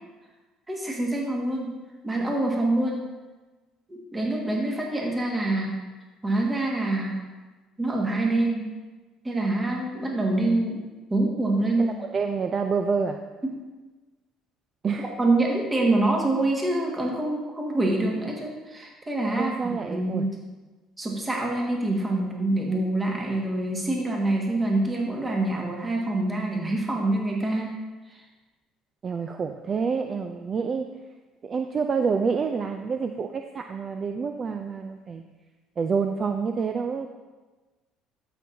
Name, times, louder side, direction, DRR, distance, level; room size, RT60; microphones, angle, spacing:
voice 1, 0.7-1.7 2.0-3.1 3.9-5.8 6.2-7.2 7.8-8.7 9.2-10.8 11.1-11.9 13.4-13.5 15.2-20.3 21.0-27.7 28.1-28.2, right 2 dB, 20° right, -2 dB, 1.8 m, -25 dB
voice 2, 11.8-13.2 14.8-15.1 19.4-20.3 29.0-30.9 31.4-35.2 35.8-37.1, right 5 dB, 40° right, 6 dB, 0.5 m, -28 dB
12.5 x 6.0 x 2.8 m, 1.2 s
supercardioid pair, 75°, 0 cm